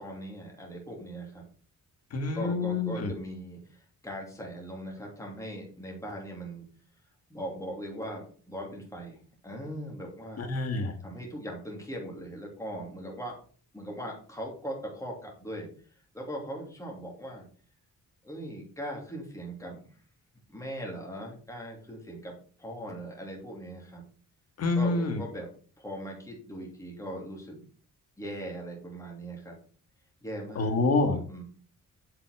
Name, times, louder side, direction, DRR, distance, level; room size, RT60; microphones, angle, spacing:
voice 1, 0.0-1.4 2.3-6.7 7.3-9.2 9.4-10.5 11.0-13.3 13.7-15.7 16.1-17.4 18.2-19.8 20.5-22.3 22.6-24.0 24.7-25.5 25.8-27.6 28.2-29.5 30.2-30.7 31.3-31.4, equal, 10° left, -1 dB, 2.8 m, -39 dB
voice 2, 2.1-3.1 10.4-11.0 24.6-25.2 30.6-31.2, left 3 dB, 50° left, 6 dB, 1.7 m, -27 dB
7.5 x 5.8 x 4.8 m, 0.42 s
cardioid pair, 125°, 32 cm